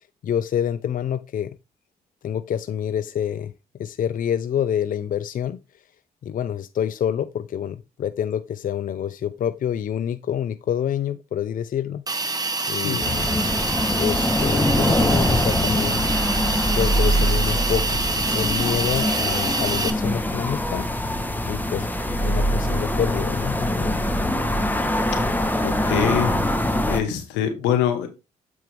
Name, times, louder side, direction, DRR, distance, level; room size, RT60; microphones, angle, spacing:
voice 1, 0.2-1.5 2.2-3.5 3.8-5.6 6.2-12.0 12.7-13.1 14.0-16.0 16.7-18.0 18.3-20.9 21.5-21.9 22.2-24.0, left 9 dB, 50° left, 0.5 m, -27 dB
Hiss, 12.1-19.9, right 3 dB, 20° right, 1.5 m, -26 dB
voice 2, 12.8-13.2 25.6-26.3 26.9-28.1, left 9 dB, 85° left, 1.3 m, -24 dB
sound 1, 13.0-27.0, left 1 dB, 10° left, 1.2 m, -23 dB
7.9 x 4.6 x 3.4 m
hypercardioid pair, 50°, 18 cm